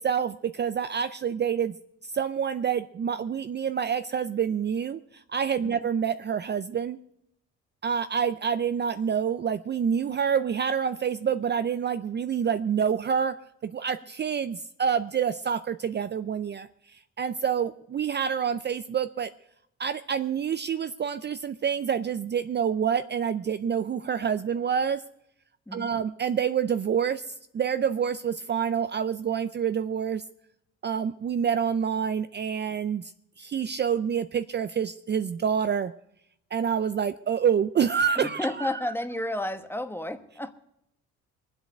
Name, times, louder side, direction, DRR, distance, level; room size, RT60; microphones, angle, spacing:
voice 1, 0.0-1.8 2.0-7.0 7.8-13.4 13.6-19.3 19.8-25.0 25.7-30.2 30.8-33.1 33.4-35.9 36.5-38.8, right 7 dB, 35° right, 11 dB, 0.5 m, -27 dB
voice 2, 38.1-40.5, left 1 dB, 5° left, 9 dB, 1.1 m, -32 dB
21.5 x 8.0 x 6.6 m, 0.80 s
cardioid pair, 90°, 30 cm